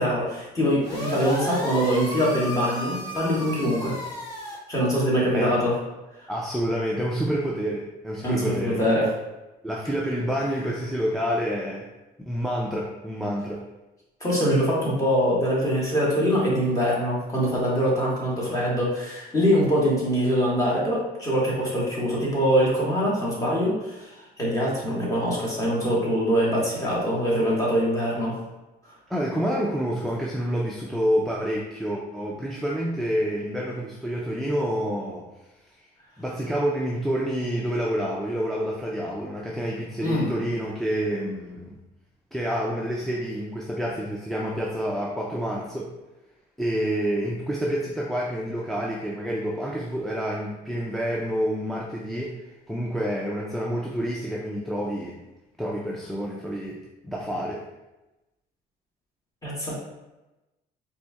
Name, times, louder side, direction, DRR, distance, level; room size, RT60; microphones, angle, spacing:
voice 1, 0.0-4.0 4.7-5.8 8.2-9.1 14.2-28.4 40.0-40.3 59.4-59.7, equal, 20° left, -6 dB, 1.4 m, -23 dB
sound 1, 0.8-4.5, equal, 85° left, 1.2 m, -33 dB
voice 2, 6.3-8.8 9.6-11.9 12.3-13.6 29.1-35.3 36.2-41.7 42.3-45.9 46.6-52.3 52.7-55.2 55.6-57.6, equal, ahead, -3 dB, 0.4 m, -28 dB
4.1 x 2.7 x 2.3 m, 1.0 s
cardioid pair, 110°, 17 cm